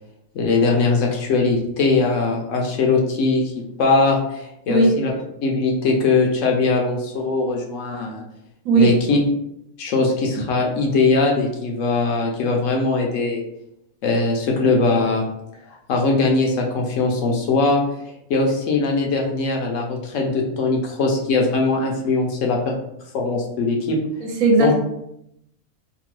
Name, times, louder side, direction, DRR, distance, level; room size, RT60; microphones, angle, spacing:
voice 1, 0.3-3.5 3.8-5.1 5.4-8.2 8.7-9.2 9.8-13.4 14.0-15.2 15.9-17.8 18.3-22.8 23.1-24.0 24.6-24.8, left 3 dB, 70° left, 1 dB, 0.9 m, -20 dB
voice 2, 8.6-9.0 24.2-24.8, right 3 dB, 70° right, 1 dB, 1.0 m, -16 dB
2.8 x 2.2 x 3.0 m, 0.79 s
omnidirectional pair, 1.5 m